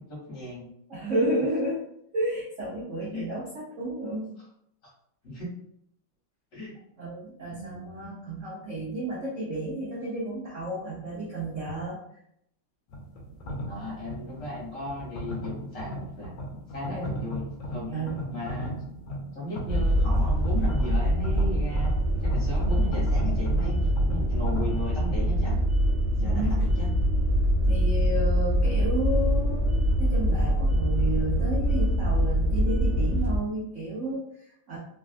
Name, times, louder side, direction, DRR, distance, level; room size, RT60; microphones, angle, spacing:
voice 1, 0.1-0.7 1.1-1.2 3.1-3.2 5.2-5.5 6.5-6.7 7.5-8.1 13.7-16.4 16.7-17.4 17.7-18.0 18.3-18.7 19.3-21.9 22.2-23.7 24.0-25.6 26.2-26.9, left 1 dB, 45° left, -7 dB, 1.4 m, -36 dB
voice 2, 0.9-1.8 2.1-4.3 7.0-12.0 13.3-13.4 16.9-17.1 17.9-18.3 26.2-26.7 27.7-29.7 30.0-34.8, right 1 dB, 70° right, -6 dB, 0.7 m, -32 dB
sound 1, 12.9-24.8, equal, 75° left, 1.2 m, -37 dB
sound 2, 19.7-33.4, equal, 30° right, 1.0 m, -24 dB
3.3 x 2.3 x 2.4 m, 0.73 s
omnidirectional pair, 2.3 m